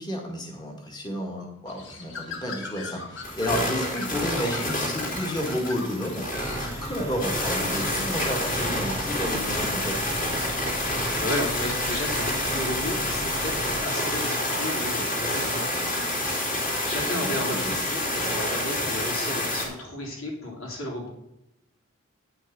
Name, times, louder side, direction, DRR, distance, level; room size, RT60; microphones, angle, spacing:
voice 1, 0.0-10.1 17.1-17.7, equal, 20° left, 0 dB, 2.0 m, -31 dB
Bird, 1.7-9.1, left 4 dB, 60° left, 1.7 m, -41 dB
sound 1, 3.2-19.7, left 1 dB, 40° left, 3.2 m, -28 dB
sound 2, 6.4-13.9, equal, 15° right, 0.7 m, -37 dB
voice 2, 10.8-16.1 16.8-21.1, left 1 dB, 80° left, -2 dB, 4.1 m, -33 dB
9.7 x 6.3 x 6.3 m, 0.85 s
head